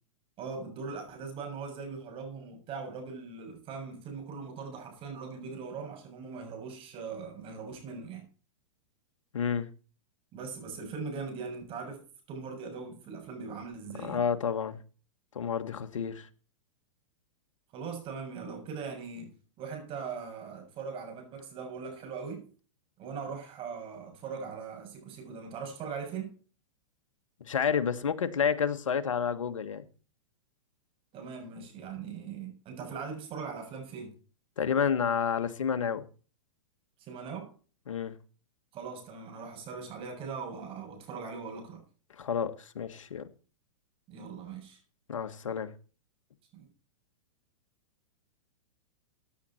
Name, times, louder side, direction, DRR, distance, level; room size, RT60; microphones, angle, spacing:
voice 1, 0.4-8.3 10.3-12.0 12.3-14.2 17.7-22.5 23.0-26.4 31.1-34.2 37.0-37.5 38.7-41.8 44.1-44.8 46.5-46.7, right 5 dB, 35° right, 7.0 m, -40 dB
voice 2, 9.3-9.7 14.0-14.8 15.3-16.3 27.5-29.8 34.6-36.0 37.9-38.1 42.2-43.3 45.1-45.7, left 7 dB, 85° left, 1.6 m, -30 dB
16.5 x 9.4 x 4.4 m
hypercardioid pair, 120°, 16 cm